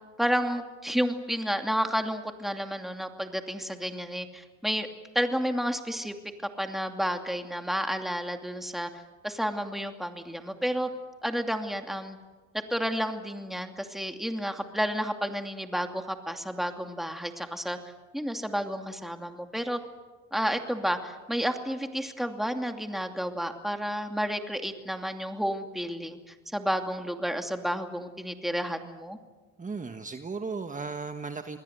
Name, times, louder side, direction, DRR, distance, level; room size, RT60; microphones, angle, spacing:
voice 1, 0.2-4.9 5.1-6.1 6.6-8.9 9.2-10.9 11.2-12.2 12.7-17.8 18.1-19.8 20.3-29.2, equal, ahead, 5 dB, 2.6 m, -31 dB
voice 2, 29.6-31.6, right 4 dB, 25° right, 7 dB, 1.4 m, -36 dB
28.0 x 20.5 x 8.2 m, 1.3 s
cardioid pair, 90°, 30 cm